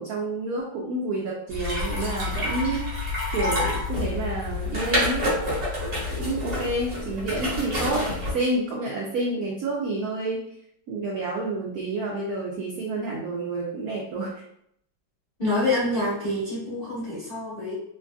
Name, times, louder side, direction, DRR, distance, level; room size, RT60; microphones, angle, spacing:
voice 1, 0.0-2.9 3.3-5.3 6.1-10.4 10.9-14.3, right 2 dB, 85° right, -2 dB, 0.8 m, -29 dB
sound 1, 1.5-8.3, left 2 dB, 40° right, 1.1 m, -28 dB
voice 2, 15.4-17.7, left 2 dB, 30° left, -11 dB, 0.8 m, -26 dB
3.2 x 2.5 x 2.3 m, 0.72 s
omnidirectional pair, 2.1 m